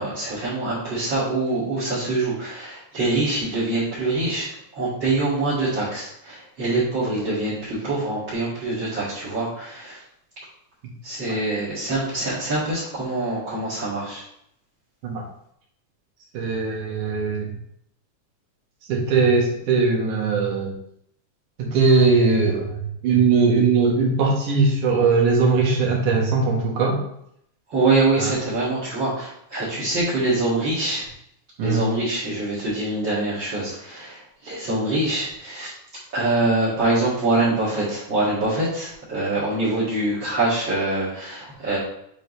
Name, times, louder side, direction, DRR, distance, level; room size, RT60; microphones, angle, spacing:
voice 1, 0.0-10.0 11.0-14.2 27.7-31.1 31.6-35.8 36.1-41.8, right 2 dB, 40° right, -11 dB, 2.7 m, -24 dB
voice 2, 16.3-17.5 18.9-20.7 21.6-27.0 28.2-28.3 31.6-31.8, right 4 dB, 80° right, -2 dB, 3.1 m, -20 dB
7.7 x 5.1 x 3.2 m, 0.72 s
omnidirectional pair, 3.6 m